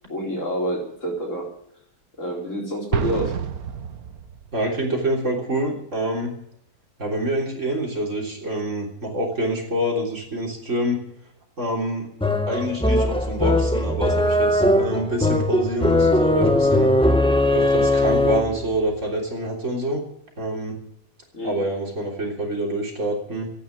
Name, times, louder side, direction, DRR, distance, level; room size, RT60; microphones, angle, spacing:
voice 1, 0.1-1.5 2.2-3.4 21.3-21.6, equal, 55° left, -1 dB, 4.5 m, -27 dB
Explosion, 2.9-4.6, right 8 dB, 70° right, 1.5 m, -28 dB
voice 2, 4.5-6.3 7.0-11.0 11.6-12.1 12.5-16.9 17.5-20.0 20.4-20.8 21.4-23.5, right 1 dB, 50° right, -1 dB, 3.8 m, -26 dB
sound 1, 12.2-18.7, left 1 dB, 5° left, 0.8 m, -19 dB
14.5 x 9.4 x 9.3 m, 0.75 s
omnidirectional pair, 1.6 m